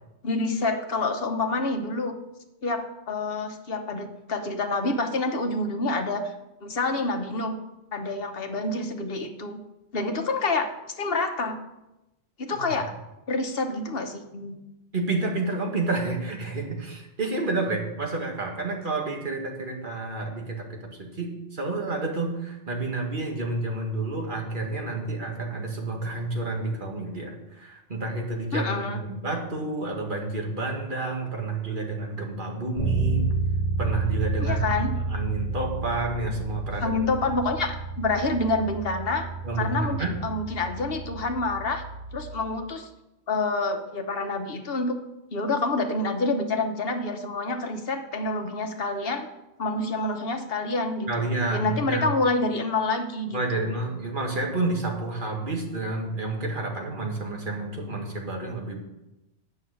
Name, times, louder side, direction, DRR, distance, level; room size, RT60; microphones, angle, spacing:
voice 1, 0.2-2.2 2.6-6.3 6.6-7.6 7.9-9.6 9.9-10.7 11.0-11.6 12.4-12.9 13.3-14.6 28.5-29.0 34.4-34.9 36.8-39.3 39.6-41.8 42.1-42.9 43.3-45.0 45.3-49.3 49.6-53.7, left 3 dB, 55° left, 5 dB, 1.2 m, -27 dB
voice 2, 14.9-33.3 33.8-34.7 34.9-37.0 39.4-40.2 51.1-52.1 53.3-58.8, right 2 dB, 45° right, 1 dB, 1.9 m, -30 dB
Bass guitar, 32.8-42.6, right 3 dB, 25° left, 2.5 m, -30 dB
9.0 x 6.3 x 7.7 m, 0.95 s
omnidirectional pair, 1.2 m